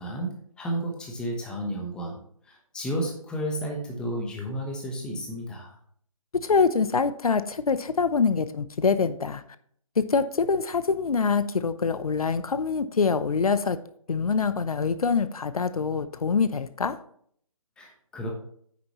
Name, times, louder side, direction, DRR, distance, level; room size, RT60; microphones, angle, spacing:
voice 1, 0.0-2.2 2.4-5.8 17.8-18.3, right 1 dB, 5° left, 0 dB, 1.0 m, -32 dB
voice 2, 6.3-9.4 10.0-13.8 14.1-17.0, left 5 dB, 80° left, 13 dB, 0.7 m, -25 dB
9.6 x 6.8 x 3.0 m, 0.63 s
figure-of-eight pair, 155°, 19 cm